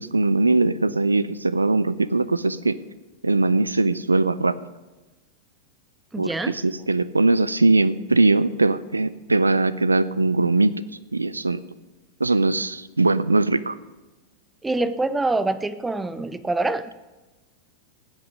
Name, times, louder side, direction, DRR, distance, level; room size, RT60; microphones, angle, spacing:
voice 1, 0.0-2.8 3.2-4.6 6.2-10.7 11.1-11.6 12.2-13.7, right 2 dB, 80° right, 16 dB, 0.5 m, -21 dB
voice 2, 6.1-6.5 14.6-16.9, right 2 dB, 10° right, 12 dB, 0.7 m, -25 dB
16.0 x 8.5 x 5.2 m, 1.1 s
figure-of-eight pair, 90°, 0 cm